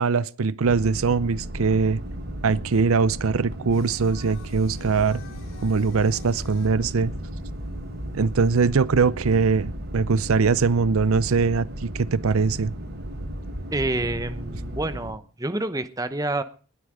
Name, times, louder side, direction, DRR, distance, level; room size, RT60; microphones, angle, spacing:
voice 1, 0.0-2.0 2.4-5.2 5.6-7.1 8.1-12.7, right 4 dB, 75° right, 0.5 m, -22 dB
sound 1, 0.6-15.1, right 1 dB, 45° right, 1.8 m, -35 dB
Singing, 3.7-8.7, left 4 dB, 60° left, 4.5 m, -50 dB
voice 2, 13.7-16.4, right 2 dB, 15° right, 0.8 m, -28 dB
20.0 x 8.2 x 5.0 m
head